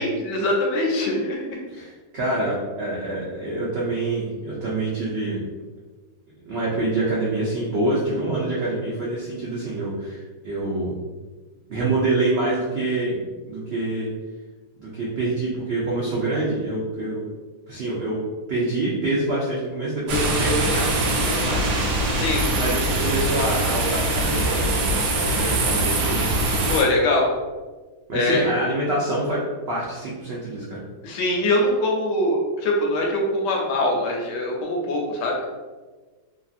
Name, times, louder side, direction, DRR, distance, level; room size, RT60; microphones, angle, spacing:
voice 1, 0.0-1.6 22.2-22.4 26.7-27.3 28.1-28.4 31.0-35.4, left 1 dB, 80° left, 0 dB, 1.2 m, -23 dB
voice 2, 1.7-5.4 6.4-11.0 11.7-14.1 14.8-17.3 17.7-18.2 18.5-21.7 22.5-26.7 28.1-29.4 29.7-30.8, right 2 dB, 90° right, -6 dB, 0.5 m, -26 dB
sound 1, 20.1-26.8, right 2 dB, 70° right, 0.9 m, -23 dB
2.9 x 2.6 x 2.4 m, 1.3 s
omnidirectional pair, 1.9 m